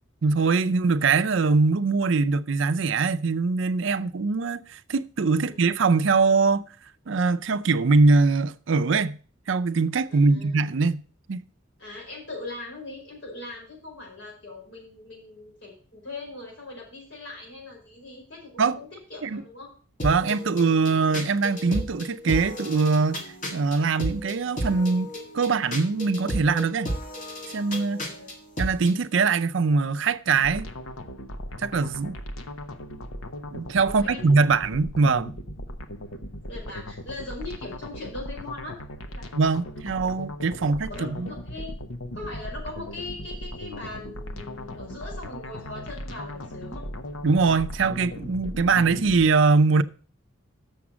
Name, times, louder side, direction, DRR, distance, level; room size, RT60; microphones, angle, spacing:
voice 1, 0.2-6.7 7.1-9.2 9.5-11.0 11.3-11.4 18.6-18.8 19.2-19.4 20.0-25.1 25.3-26.9 27.5-28.0 28.6-30.7 31.6-32.2 33.5-35.3 39.3-41.3 47.2-49.8, right 4 dB, 65° right, 0.5 m, -22 dB
voice 2, 10.1-10.6 11.8-19.7 28.0-28.3 33.9-34.2 36.5-38.8 39.1-39.3 39.6-40.0 40.5-41.7 42.1-46.8, left 2 dB, 60° left, 5.1 m, -40 dB
sound 1, 20.0-29.0, equal, 40° left, 1.8 m, -33 dB
sound 2, 30.4-49.3, left 1 dB, 85° left, 1.0 m, -38 dB
7.1 x 6.1 x 7.1 m
head